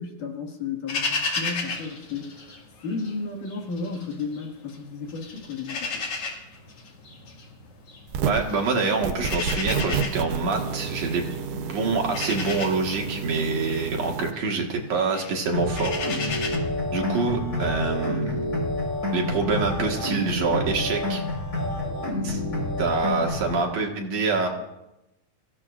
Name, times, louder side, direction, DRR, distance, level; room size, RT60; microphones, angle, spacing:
voice 1, 0.0-2.5 2.8-6.1, left 4 dB, 75° left, 1 dB, 3.5 m, -33 dB
sound 1, 0.9-3.1 3.5-4.8 5.1-16.6, left 4 dB, 45° left, 3.0 m, -34 dB
sound 2, 8.1-8.6 9.0-14.3, right 7 dB, 85° right, 2.6 m, -30 dB
voice 2, 8.2-11.2 11.5-16.0 16.9-18.4 19.1-21.2 22.2-22.4 22.8-24.5, right 4 dB, 55° right, 1 dB, 2.8 m, -26 dB
sound 3, 15.5-23.5, left 1 dB, 25° left, 4.9 m, -28 dB
25.0 x 15.5 x 2.5 m, 0.91 s
omnidirectional pair, 3.8 m